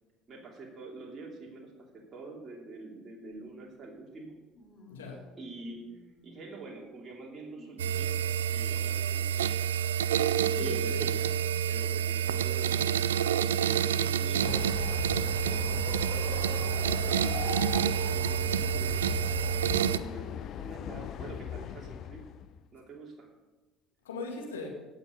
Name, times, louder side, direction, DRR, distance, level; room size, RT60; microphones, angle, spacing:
voice 1, 0.3-4.3 5.4-9.5 10.6-11.4 11.7-13.4 14.2-14.6 15.4-19.0 19.5-22.2 22.7-23.3, right 3 dB, 35° right, -2 dB, 2.9 m, -46 dB
sound 1, 3.3-3.4 4.5-6.6 7.1-9.2 10.4-11.8 12.5-12.6 13.7-13.8, left 2 dB, 30° left, 4.0 m, -57 dB
voice 2, 4.9-5.3 10.5-11.0 13.9-14.6 24.0-24.7, left 3 dB, 80° left, 0 dB, 2.1 m, -39 dB
sound 2, 7.8-20.0, right 9 dB, 80° right, 0.4 m, -28 dB
Train, 14.4-22.6, left 11 dB, 50° left, 0.5 m, -38 dB
17.0 x 6.6 x 5.3 m, 1.2 s
figure-of-eight pair, 60°, 0 cm